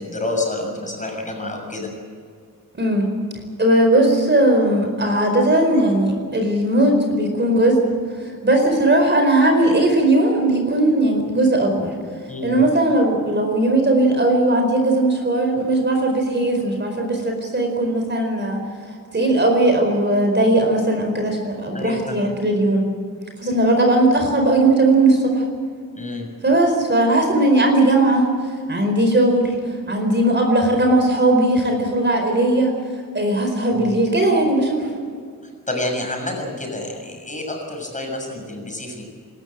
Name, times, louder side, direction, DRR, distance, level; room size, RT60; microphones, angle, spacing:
voice 1, 0.0-1.9 12.3-12.7 21.7-22.2 25.9-26.3 33.7-33.9 35.4-39.0, left 2 dB, 20° left, 1 dB, 6.7 m, -28 dB
voice 2, 2.7-3.1 3.6-7.8 8.2-11.9 12.4-18.6 19.1-22.9 23.4-25.4 26.4-28.3 28.7-29.6 29.9-32.7 33.1-34.9, right 1 dB, 30° right, 3 dB, 4.6 m, -18 dB
27.5 x 13.5 x 8.9 m, 2.1 s
wide cardioid pair, 125°, 34 cm